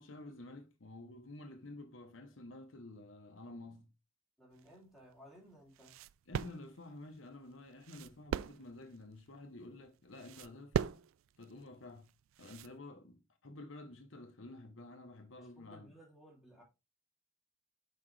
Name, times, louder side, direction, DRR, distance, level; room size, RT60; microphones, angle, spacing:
voice 1, 0.0-3.9 6.3-11.0 11.4-12.1 12.4-15.9, left 2 dB, 70° left, 1.0 m, -51 dB
voice 2, 4.4-5.9 15.4-16.6, equal, ahead, 2.8 m, -58 dB
sound 1, 4.5-12.8, right 8 dB, 85° right, 0.3 m, -42 dB
6.0 x 5.2 x 3.3 m
head